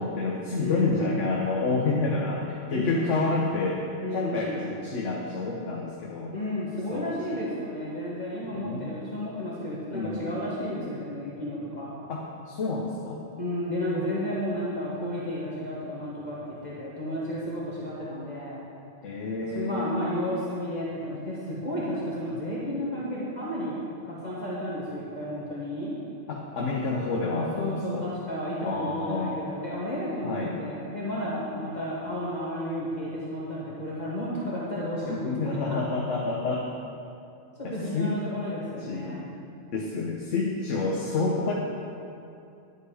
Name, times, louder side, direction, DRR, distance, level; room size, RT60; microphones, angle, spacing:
voice 1, 0.0-6.3 6.9-7.2 8.5-8.9 9.9-10.4 12.1-13.2 19.0-20.0 26.3-28.0 28.6-29.4 30.2-30.5 35.1-36.7 37.6-38.1 38.8-39.3 39.7-41.5, left 3 dB, 85° left, -2 dB, 1.3 m, -29 dB
voice 2, 0.6-1.2 2.7-3.2 4.0-4.6 6.3-11.9 13.4-18.6 19.4-23.8 24.0-25.9 27.6-35.8 37.6-39.3, equal, 35° left, -8 dB, 1.8 m, -32 dB
11.0 x 8.7 x 4.9 m, 2.6 s
omnidirectional pair, 1.2 m